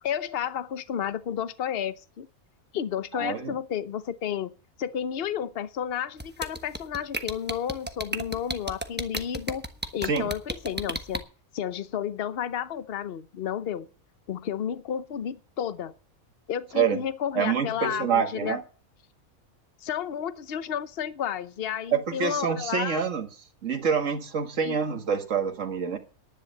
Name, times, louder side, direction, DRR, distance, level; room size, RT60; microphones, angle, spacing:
voice 1, 0.0-2.3 2.7-4.5 4.8-9.6 9.9-11.2 11.5-13.9 14.3-15.9 16.5-18.6 19.8-23.0 24.6-24.8, left 9 dB, 50° left, 0.9 m, -31 dB
voice 2, 3.1-3.6 10.0-10.3 16.7-17.0 17.3-18.6 21.9-23.3 23.6-26.0, right 6 dB, 60° right, 2.0 m, -26 dB
sound 1, 6.2-11.2, right 1 dB, 10° right, 1.0 m, -32 dB
11.0 x 10.0 x 6.6 m
omnidirectional pair, 1.5 m